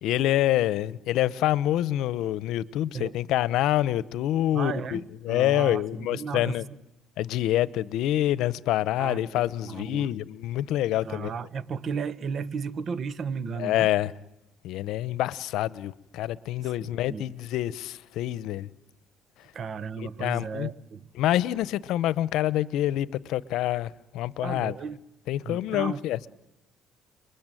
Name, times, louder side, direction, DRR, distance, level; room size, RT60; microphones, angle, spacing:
voice 1, 0.0-6.6 7.2-11.3 13.6-14.1 14.6-18.7 20.2-20.7 21.2-24.7 25.3-26.3, left 13 dB, 75° left, 0.9 m, -26 dB
voice 2, 4.5-6.6 9.0-10.2 11.0-13.9 16.6-17.3 19.5-21.1 24.4-25.0 25.4-26.0, right 6 dB, 45° right, 1.3 m, -34 dB
29.5 x 22.0 x 9.2 m
cardioid pair, 110°, 0 cm